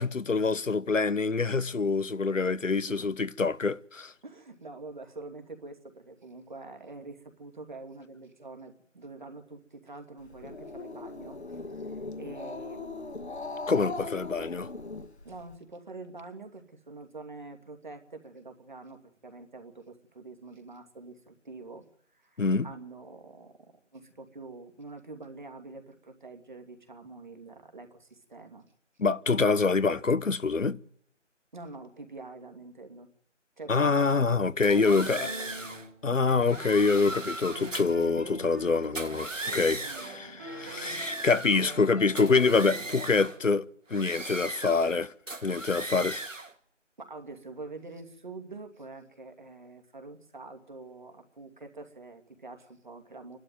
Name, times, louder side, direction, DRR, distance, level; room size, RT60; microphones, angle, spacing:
voice 1, 0.0-4.1 13.7-14.7 22.4-22.7 29.0-30.8 33.7-35.3 36.0-43.6 43.9-45.1 45.4-46.2, left 4 dB, 90° left, 1.1 m, -26 dB
voice 2, 4.2-14.3 15.2-19.0 19.2-21.9 22.1-23.5 23.9-28.6 31.5-33.1 33.6-35.7 39.8-40.5 47.0-53.4, right 3 dB, 40° right, 2.7 m, -46 dB
Growling, 10.2-15.5, left 3 dB, 60° left, 1.8 m, -39 dB
sound 1, 34.6-35.9 36.4-38.0 38.8-40.2 40.6-41.9 42.2-43.4 43.9-45.0 45.3-46.5, right 2 dB, 90° right, 2.2 m, -38 dB
sound 2, 35.2-37.1 37.5-43.3, right 1 dB, 10° right, 2.1 m, -44 dB
29.0 x 12.0 x 9.3 m
figure-of-eight pair, 170°, 37 cm